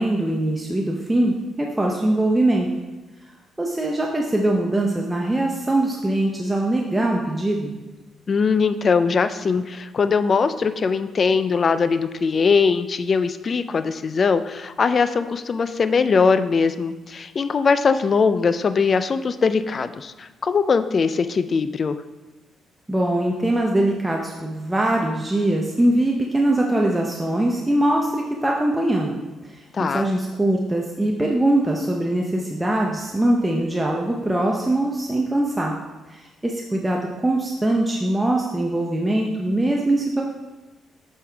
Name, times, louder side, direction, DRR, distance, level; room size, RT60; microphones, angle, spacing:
voice 1, 0.0-2.7 3.6-7.7 22.9-29.2 29.4-35.7 36.1-40.2, right 1 dB, 10° right, -1 dB, 0.7 m, -22 dB
voice 2, 8.3-22.0 29.7-30.1, left 5 dB, 40° left, 11 dB, 0.4 m, -21 dB
7.8 x 5.5 x 3.4 m, 1.2 s
cardioid pair, 90°, 0 cm